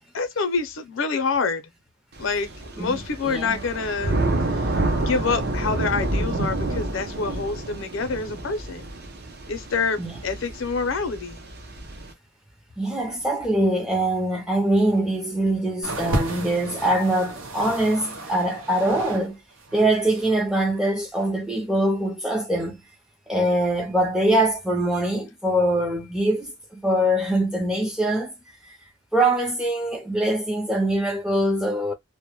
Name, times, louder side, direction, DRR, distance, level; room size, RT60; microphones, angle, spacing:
voice 1, 0.1-1.6 2.2-4.2 5.0-8.9 9.5-11.4, left 4 dB, 70° left, 0.5 m, -27 dB
Thunder / Rain, 2.2-12.1, right 2 dB, 50° right, 0.6 m, -29 dB
voice 2, 3.2-3.6 10.0-10.2 12.8-19.4 19.7-22.8 23.3-28.3 29.1-31.9, right 1 dB, 5° right, 0.5 m, -23 dB
sound 1, 15.8-19.3 19.5-20.4 21.2-21.3, right 1 dB, 85° right, 0.7 m, -32 dB
2.1 x 2.1 x 2.9 m
head